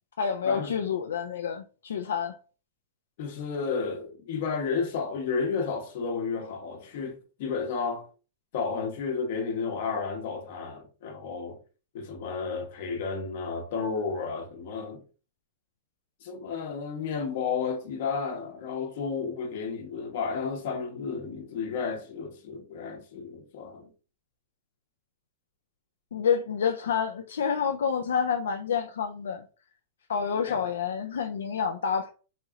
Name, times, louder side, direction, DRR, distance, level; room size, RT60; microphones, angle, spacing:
voice 1, 0.2-2.4 26.1-29.4 30.1-32.1, left 6 dB, 90° left, 0.3 m, -28 dB
voice 2, 3.2-8.0 8.5-11.6 11.9-15.0 16.2-23.9 30.5-30.6, left 5 dB, 60° left, 0.8 m, -32 dB
3.0 x 2.8 x 2.4 m
hypercardioid pair, 135°, 0 cm